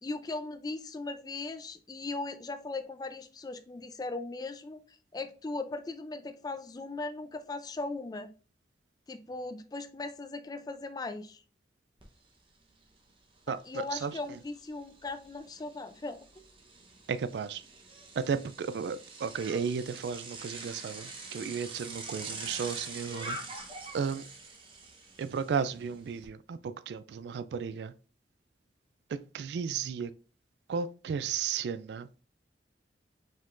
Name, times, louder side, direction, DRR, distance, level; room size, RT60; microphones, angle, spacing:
voice 1, 0.0-4.8 5.1-8.3 9.1-11.4 13.5-16.2, left 3 dB, 20° left, 0.4 m, -38 dB
Bicycle, 12.0-12.1 12.5-26.3, right 3 dB, 30° right, 0.9 m, -45 dB
voice 2, 13.5-14.4 17.1-17.6 18.2-23.4 23.9-24.2 25.2-27.9 29.1-30.1 30.7-32.1, right 6 dB, 70° right, 0.3 m, -34 dB
5.2 x 3.6 x 2.5 m
head